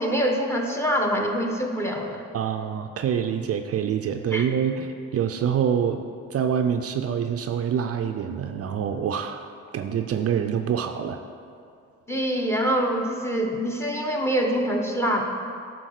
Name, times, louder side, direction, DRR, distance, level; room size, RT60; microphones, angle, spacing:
voice 1, 0.0-2.2 4.3-4.4 12.1-15.2, equal, 10° left, 2 dB, 1.1 m, -25 dB
voice 2, 2.3-9.5 9.7-11.2, right 8 dB, 50° right, 7 dB, 0.5 m, -26 dB
9.8 x 4.1 x 6.5 m, 2.4 s
cardioid pair, 90°, 30 cm